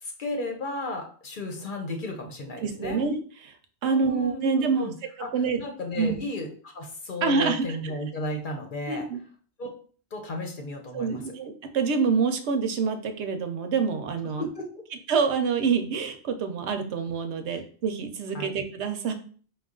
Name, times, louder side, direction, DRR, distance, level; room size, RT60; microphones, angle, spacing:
voice 1, 0.0-3.0 3.8-4.9 5.2-5.3 5.6-9.0 9.6-9.8 10.1-11.2 14.4-14.7 17.5-17.6 18.3-18.5, left 1 dB, 50° left, 3 dB, 0.8 m, -34 dB
voice 2, 2.6-3.6 3.8-4.9 5.3-5.6 6.0-6.2 7.2-7.6 8.9-9.2 10.9-14.4 15.1-19.1, right 5 dB, 75° right, 7 dB, 0.9 m, -26 dB
4.7 x 2.3 x 3.7 m, 0.43 s
omnidirectional pair, 1.2 m